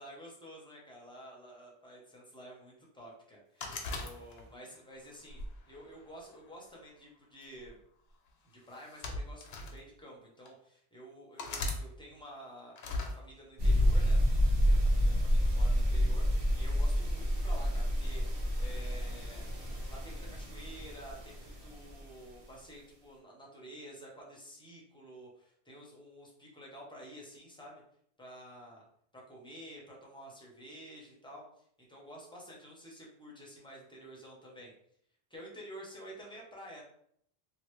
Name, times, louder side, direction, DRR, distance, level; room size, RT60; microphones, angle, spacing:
voice 1, 0.0-5.4 5.7-7.8 8.4-12.7 13.0-14.2 14.6-18.2 18.6-19.5 19.9-27.8 28.2-28.8 29.1-34.7 35.3-36.8, equal, 5° left, -3 dB, 0.6 m, -50 dB
sound 1, 3.6-4.7 5.3-6.5 7.4-7.7 8.7-9.8 10.5-10.6 11.4-11.8 12.8-13.1, left 2 dB, 70° left, 0.8 m, -38 dB
sound 2, 13.6-22.0, equal, 80° right, 1.1 m, -29 dB
3.1 x 2.4 x 3.0 m, 0.68 s
omnidirectional pair, 1.1 m